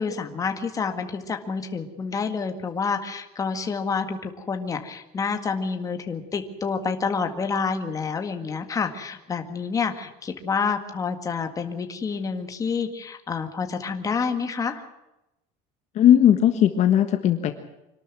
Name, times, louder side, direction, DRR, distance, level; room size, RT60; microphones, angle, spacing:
voice 1, 0.0-14.8, left 5 dB, 20° left, 6 dB, 1.9 m, -28 dB
voice 2, 15.9-17.5, left 10 dB, 40° left, 8 dB, 1.5 m, -17 dB
25.5 x 12.5 x 9.1 m, 0.93 s
cardioid pair, 165°, 17 cm